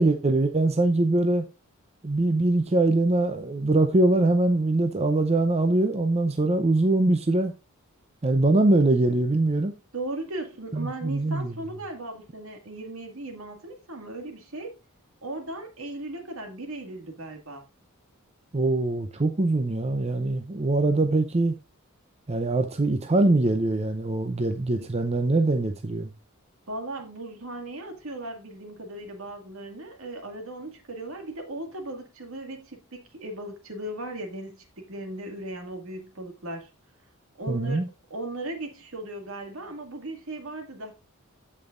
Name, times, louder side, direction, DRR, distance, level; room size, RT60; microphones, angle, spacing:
voice 1, 0.0-1.4 2.0-7.5 8.2-9.7 10.7-11.5 18.5-21.5 22.3-26.1 37.5-37.9, right 2 dB, 30° right, 0.6 m, -23 dB
voice 2, 9.9-14.8 15.2-17.6 24.8-24.9 26.7-36.7 37.4-37.8 38.1-40.9, right 2 dB, 70° right, 2.1 m, -37 dB
15.0 x 5.4 x 2.5 m
head